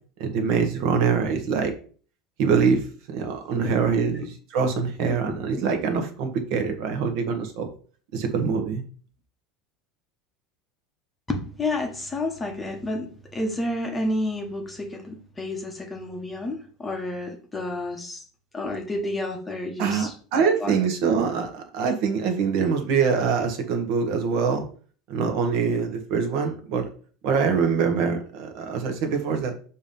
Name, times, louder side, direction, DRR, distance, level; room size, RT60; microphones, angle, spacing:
voice 1, 0.2-1.7 2.4-2.8 3.1-7.7 8.1-8.8 19.8-24.6 25.1-26.9 27.2-29.5, right 5 dB, 50° right, 5 dB, 1.2 m, -24 dB
voice 2, 3.6-4.1 5.1-5.6 11.3-18.2 18.5-20.1 20.4-20.8, left 1 dB, 10° left, 2 dB, 0.9 m, -30 dB
7.0 x 2.8 x 5.3 m, 0.42 s
cardioid pair, 175°, 0 cm